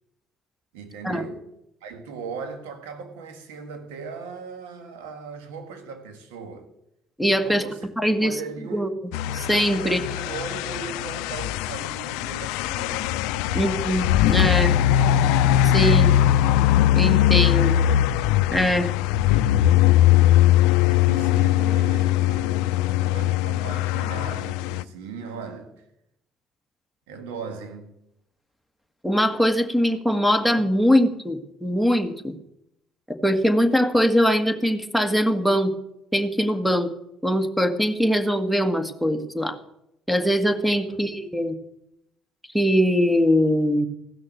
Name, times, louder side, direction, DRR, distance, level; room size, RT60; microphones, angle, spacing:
voice 1, 0.7-1.5 1.8-6.7 7.4-7.9 8.2-9.0 9.8-13.1 13.5-13.7 20.7-22.6 23.0-25.8 27.1-27.9 40.9-41.0, right 5 dB, 90° right, 1.8 m, -38 dB
voice 2, 7.2-7.6 8.0-8.3 8.7-8.9 9.3-10.0 13.5-14.7 15.6-16.1 16.9-17.8 18.5-18.9 29.0-32.3 33.1-35.7 36.1-36.9 37.2-39.6 40.1-41.5 42.5-43.9, equal, 5° right, 1.7 m, -22 dB
sound 1, 9.1-24.8, left 12 dB, 85° left, 0.4 m, -20 dB
15.5 x 6.4 x 9.0 m
supercardioid pair, 70°, 0 cm